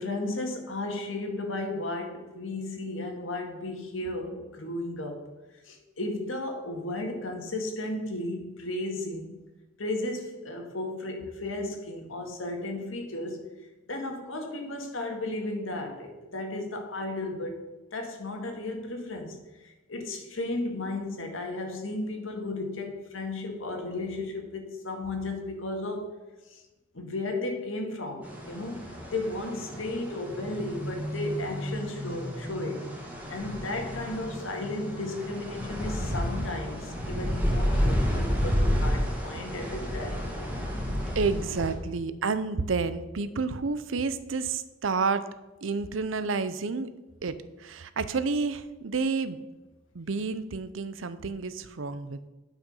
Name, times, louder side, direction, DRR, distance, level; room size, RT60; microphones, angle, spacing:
voice 1, 0.0-5.3 5.6-9.4 9.8-13.5 13.9-17.6 17.9-26.1 26.5-26.6 26.9-32.8 33.3-40.5, left 2 dB, 80° left, 3 dB, 1.9 m, -34 dB
sound 1, 28.2-41.7, equal, 10° right, 2.0 m, -31 dB
voice 2, 41.1-45.3 45.6-46.9 47.2-49.4 49.9-52.3, right 4 dB, 75° right, 13 dB, 0.7 m, -30 dB
9.9 x 5.9 x 5.5 m, 1.1 s
head